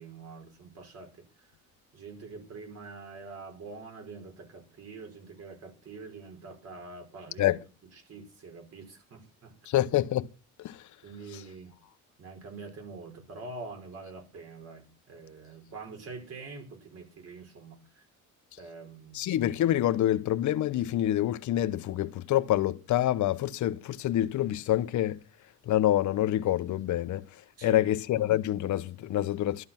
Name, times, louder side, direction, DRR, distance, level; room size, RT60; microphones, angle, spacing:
voice 1, 0.0-1.5 1.9-7.5 8.1-9.6 11.0-11.8 12.2-18.0 18.6-19.4 27.6-27.9, right 4 dB, 45° right, 5.4 m, -45 dB
voice 2, 9.7-10.3 10.6-10.9 11.3-11.4 19.1-25.2 25.7-29.6, left 13 dB, 55° left, 1.0 m, -27 dB
12.5 x 11.0 x 5.8 m
cardioid pair, 125°, 34 cm